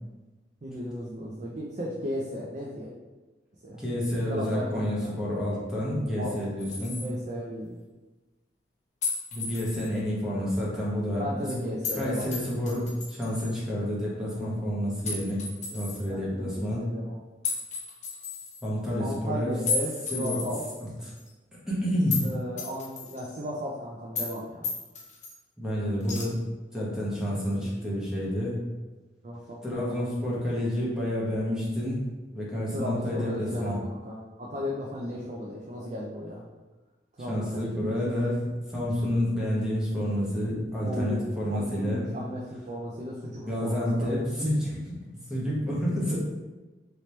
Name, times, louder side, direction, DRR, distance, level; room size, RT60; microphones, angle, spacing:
voice 1, 0.6-2.9 3.6-3.8 4.3-4.8 6.2-6.4 6.9-7.8 11.2-12.3 16.0-17.2 19.0-20.6 22.2-24.7 27.6-27.9 29.2-30.1 32.7-36.4 37.2-38.1 40.8-44.1, equal, 40° right, -4 dB, 0.4 m, -35 dB
voice 2, 3.8-7.0 9.3-11.5 11.9-15.4 15.7-16.9 18.6-19.5 20.1-20.4 20.8-20.9 21.7-22.2 25.6-26.4 26.7-28.6 29.6-32.0 32.3-33.7 37.3-38.4 38.7-42.0 43.4-44.9 45.3-46.2, equal, 5° right, -7 dB, 0.9 m, -29 dB
sound 1, 6.6-7.1 9.0-9.9 11.8-12.0 12.3-13.5 15.0-16.0 17.4-18.6 19.7-20.8 21.2-21.3 22.1-22.3 22.6-23.4 24.1-24.4 24.6-25.3 26.0-26.2, left 4 dB, 40° left, 0.6 m, -33 dB
3.1 x 2.9 x 3.1 m, 1.2 s
head